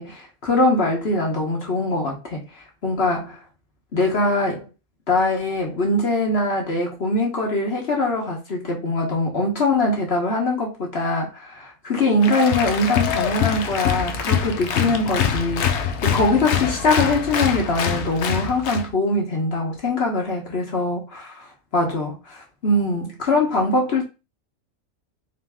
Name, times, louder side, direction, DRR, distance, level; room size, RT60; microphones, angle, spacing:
voice 1, 0.0-2.4 2.8-3.4 3.9-4.7 5.1-24.0, left 2 dB, 50° left, 1.2 m, -22 dB
Applause, 12.2-18.9, left 7 dB, 65° left, 0.8 m, -24 dB
4.0 x 2.7 x 3.4 m
omnidirectional pair, 1.5 m